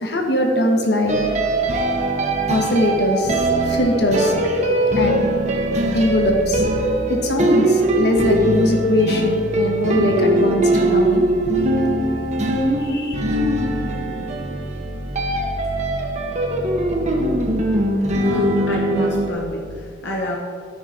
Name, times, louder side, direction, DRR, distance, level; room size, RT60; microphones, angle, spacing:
voice 1, 0.0-1.1 2.5-4.3 5.0-5.3 5.9-6.6 7.1-11.3 12.8-13.2, left 1 dB, 60° left, 2 dB, 1.3 m, -21 dB
sound 1, 1.1-19.3, right 1 dB, 40° right, 0.9 m, -21 dB
voice 2, 18.2-20.4, left 1 dB, 75° left, -2 dB, 1.0 m, -29 dB
13.0 x 5.8 x 3.9 m, 2.4 s
head